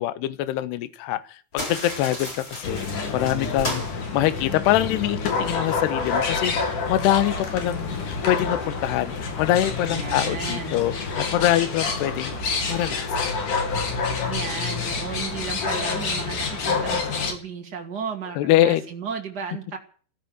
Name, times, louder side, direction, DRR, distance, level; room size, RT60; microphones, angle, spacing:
voice 1, 0.0-7.9 8.2-10.9 11.3-12.3 12.7-13.3 18.4-18.8, left 13 dB, 70° left, 2.8 m, -24 dB
sound 1, 1.5-4.9, left 1 dB, 20° left, 4.2 m, -35 dB
sound 2, 2.6-17.3, left 4 dB, 50° left, 3.7 m, -28 dB
voice 2, 9.8-10.8 14.3-19.8, right 6 dB, 40° right, 1.4 m, -34 dB
16.0 x 10.5 x 7.9 m
omnidirectional pair, 5.6 m